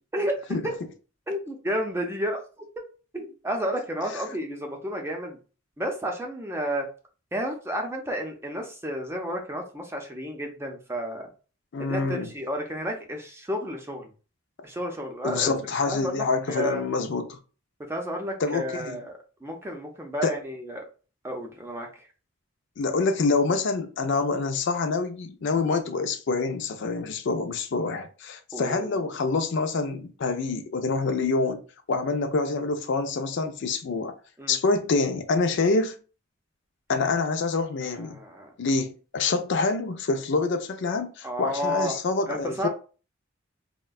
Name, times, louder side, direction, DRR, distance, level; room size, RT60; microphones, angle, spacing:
voice 1, 1.3-2.7 3.1-5.4 5.8-6.9 7.3-11.3 11.8-14.1 14.6-15.5 15.9-16.8 17.8-20.8 21.2-21.9 28.5-29.0 34.4-34.6 37.8-38.5 41.2-41.9 42.3-42.7, equal, 15° right, 0.5 m, -31 dB
voice 2, 11.7-12.3 15.2-17.4 18.4-19.0 20.2-20.3 22.8-31.6 31.9-34.1 34.5-36.0 36.9-38.2 38.6-42.7, left 3 dB, 65° left, 0.4 m, -26 dB
3.6 x 2.1 x 2.3 m
head